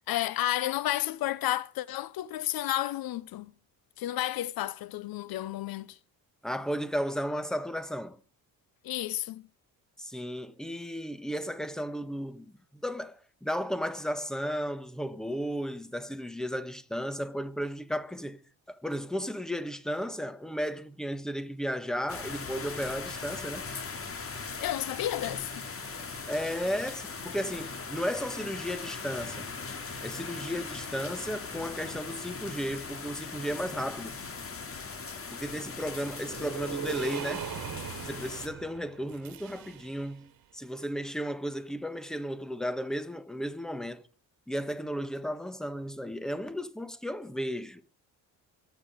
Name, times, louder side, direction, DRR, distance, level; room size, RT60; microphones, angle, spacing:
voice 1, 0.0-3.5 4.0-6.0 8.8-9.4 24.6-25.7, left 14 dB, 75° left, 0.8 m, -31 dB
voice 2, 6.4-8.2 10.0-18.4 18.7-23.7 26.2-29.5 30.0-34.2 35.3-37.5 38.0-44.0 44.5-47.8, equal, ahead, 1.3 m, -34 dB
sound 1, 22.1-38.5, left 4 dB, 40° left, 2.7 m, -40 dB
sound 2, 36.1-40.2, right 11 dB, 70° right, 1.7 m, -40 dB
24.0 x 9.3 x 5.1 m
cardioid pair, 105°, 36 cm